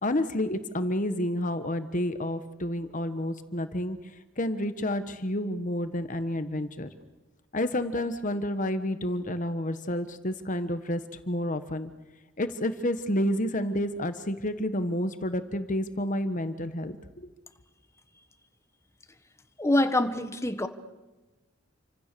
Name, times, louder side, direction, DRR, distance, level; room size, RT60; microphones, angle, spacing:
voice 1, 0.0-4.0 4.4-6.9 7.5-11.0 11.3-11.9 12.4-17.3, left 1 dB, 40° left, 10 dB, 1.3 m, -30 dB
voice 2, 19.6-20.7, left 1 dB, 15° left, 8 dB, 1.4 m, -25 dB
29.0 x 25.5 x 6.8 m, 1.1 s
head